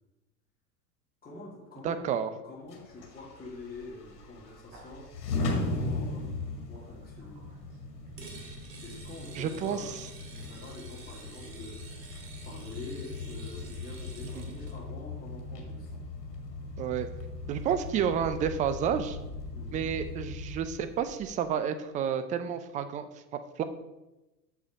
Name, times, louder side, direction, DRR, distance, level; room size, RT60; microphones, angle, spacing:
voice 1, 1.2-2.1 2.4-5.2 5.5-7.5 8.3-8.6 8.8-10.0 10.4-12.1 12.4-16.0 19.5-19.9, left 2 dB, 20° left, -5 dB, 2.3 m, -46 dB
voice 2, 1.8-2.3 9.3-10.1 14.3-14.4 16.8-17.1 17.5-19.2 19.7-23.6, right 8 dB, 15° right, 10 dB, 0.4 m, -30 dB
sound 1, 2.7-20.6, left 2 dB, 70° left, 2.1 m, -38 dB
Bird, 3.5-21.4, right 1 dB, 55° right, 2.8 m, -53 dB
sound 2, 8.2-14.8, right 3 dB, 80° right, 2.1 m, -49 dB
7.1 x 6.8 x 5.1 m, 1.0 s
figure-of-eight pair, 90°, 49 cm